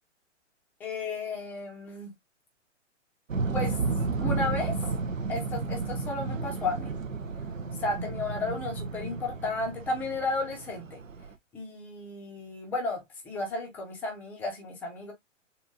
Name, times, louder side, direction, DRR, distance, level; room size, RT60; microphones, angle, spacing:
voice 1, 0.8-2.1 3.5-3.8 4.2-4.7 5.3-6.9 7.8-11.0 11.5-15.1, left 3 dB, 5° left, 0.5 m, -33 dB
sound 1, 3.3-11.3, right 4 dB, 90° right, 0.6 m, -32 dB
4.0 x 2.7 x 2.5 m
figure-of-eight pair, 125°, 38 cm